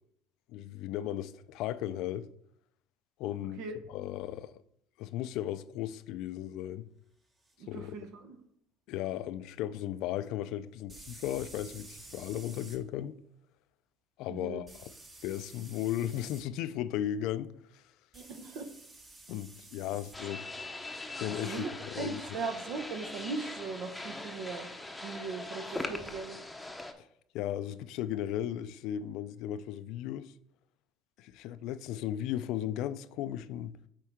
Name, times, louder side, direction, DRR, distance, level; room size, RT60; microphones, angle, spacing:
voice 1, 0.5-2.3 3.2-3.6 3.9-4.5 5.0-6.9 7.7-8.0 8.9-13.2 14.2-14.9 15.2-17.8 19.3-20.4 21.2-22.2 27.0-27.1 27.3-30.3 31.2-33.7, left 12 dB, 70° left, 0.4 m, -36 dB
sound 1, 7.4-7.5 10.9-12.8 14.7-16.4 18.1-20.2, right 2 dB, 25° right, 1.3 m, -51 dB
voice 2, 7.6-8.4 14.3-14.7 18.1-18.7 21.3-21.7 22.0-24.7 25.0-26.4, right 4 dB, 70° right, 1.0 m, -39 dB
sound 2, 20.1-26.9, left 2 dB, 5° left, 0.8 m, -41 dB
7.6 x 4.5 x 3.6 m
supercardioid pair, 95°, 0 cm